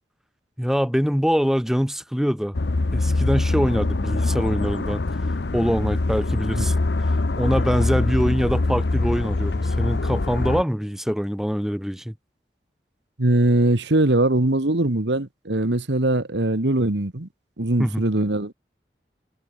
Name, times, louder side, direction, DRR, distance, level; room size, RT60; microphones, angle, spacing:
voice 1, 0.6-2.5 2.9-5.0 5.5-6.7 7.1-12.1 17.8-18.0, equal, ahead, 1.4 m, -24 dB
sound 1, 2.5-10.6, left 2 dB, 75° left, 0.8 m, -23 dB
voice 2, 13.2-17.3 17.6-18.5, right 1 dB, 85° right, 1.7 m, -21 dB
head